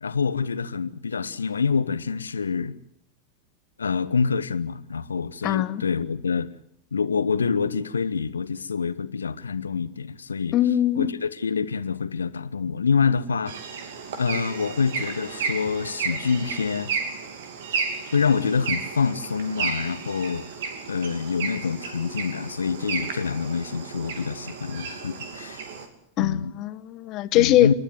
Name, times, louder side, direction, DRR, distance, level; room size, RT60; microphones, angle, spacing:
voice 1, 0.0-2.8 3.8-6.5 6.9-10.6 11.0-13.5 14.2-16.9 18.1-20.5 20.9-25.6 26.2-26.5 27.3-27.7, left 5 dB, 75° left, 1.1 m, -26 dB
voice 2, 5.4-5.8 10.5-11.1 26.2-27.7, left 14 dB, 40° left, 1.2 m, -21 dB
sound 1, 13.5-25.9, right 5 dB, 55° right, 2.9 m, -33 dB
28.5 x 12.5 x 9.5 m
figure-of-eight pair, 90°, 0 cm